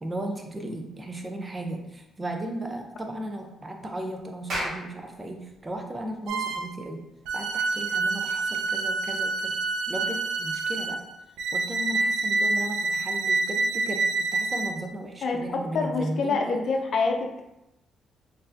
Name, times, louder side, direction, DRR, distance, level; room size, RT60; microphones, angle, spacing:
voice 1, 0.0-7.0 7.3-9.6 9.9-11.0 11.5-16.6, right 1 dB, 20° right, 3 dB, 0.6 m, -35 dB
Clapping, 4.5-9.2, right 1 dB, 65° right, 1.1 m, -38 dB
sound 1, 6.3-6.8 7.3-14.8, right 3 dB, 90° right, 0.4 m, -27 dB
voice 2, 15.2-17.3, left 4 dB, 60° left, 3 dB, 0.5 m, -26 dB
3.9 x 2.6 x 2.6 m, 0.90 s
cardioid pair, 90°, 0 cm